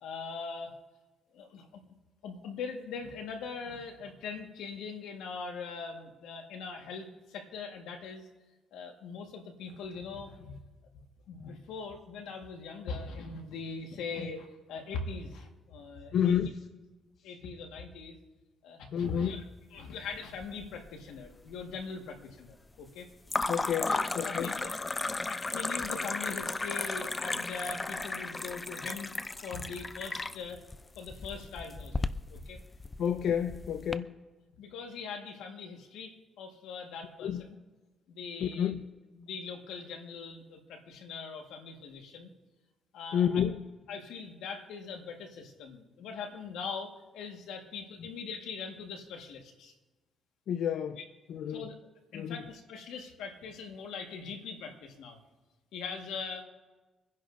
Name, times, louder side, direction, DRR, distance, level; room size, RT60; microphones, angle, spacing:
voice 1, 0.0-0.7 1.3-1.7 2.2-8.3 8.7-10.6 11.3-16.4 17.2-18.2 18.6-19.5 19.7-23.1 23.8-24.7 25.1-30.6 30.9-32.6 34.6-37.5 38.1-38.7 39.1-42.3 42.9-43.4 43.9-49.7 51.0-51.1 51.5-51.7 52.1-55.2 55.7-56.4, left 5 dB, 90° left, 3 dB, 1.5 m, -41 dB
voice 2, 16.1-16.6 18.9-19.4 23.5-24.5 33.0-34.1 37.2-37.4 38.4-38.8 43.1-43.6 50.5-51.0 51.3-51.7 52.1-52.4, left 8 dB, 70° left, 9 dB, 0.5 m, -30 dB
sound 1, 20.1-20.9 21.2-21.8 23.3-34.0, left 3 dB, 20° left, 0.4 m, -35 dB
26.0 x 10.5 x 2.6 m, 1.2 s
cardioid pair, 90°, 0 cm